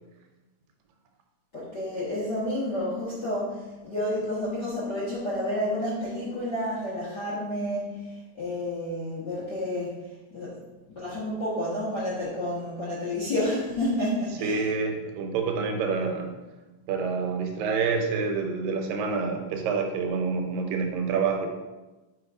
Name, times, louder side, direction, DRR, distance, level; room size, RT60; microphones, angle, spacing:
voice 1, 1.5-10.6 10.9-14.7, left 1 dB, 60° left, -9 dB, 1.0 m, -30 dB
voice 2, 14.4-16.3 16.9-21.5, right 5 dB, 85° right, 4 dB, 2.4 m, -27 dB
5.7 x 3.9 x 4.8 m, 1.1 s
omnidirectional pair, 3.9 m